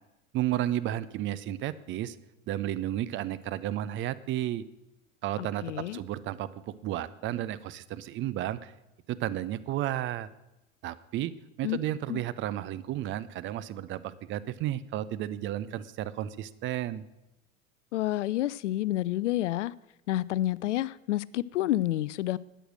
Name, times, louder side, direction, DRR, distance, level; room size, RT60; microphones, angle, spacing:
voice 1, 0.3-2.2 2.5-4.6 5.2-8.7 9.1-10.3 10.8-17.0, right 13 dB, 30° right, 0.6 m, -33 dB
voice 2, 5.4-6.0 11.6-11.8 12.1-12.2 17.9-19.7 20.1-22.4, left 15 dB, 65° left, 0.5 m, -29 dB
12.5 x 9.0 x 6.3 m
figure-of-eight pair, 80°, 39 cm